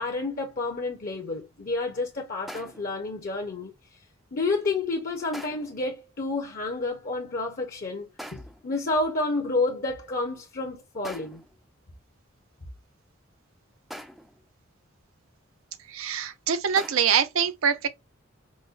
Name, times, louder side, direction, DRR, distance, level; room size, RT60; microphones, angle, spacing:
voice 1, 0.0-3.7 4.3-11.4, left 3 dB, 45° left, 0.7 m, -30 dB
sound 1, 2.5-3.0 5.3-5.8 8.2-8.7 11.0-11.6 13.9-14.4 16.8-17.3, equal, ahead, 0.3 m, -43 dB
voice 2, 15.9-17.9, right 7 dB, 85° right, 0.6 m, -24 dB
5.1 x 2.1 x 2.5 m
head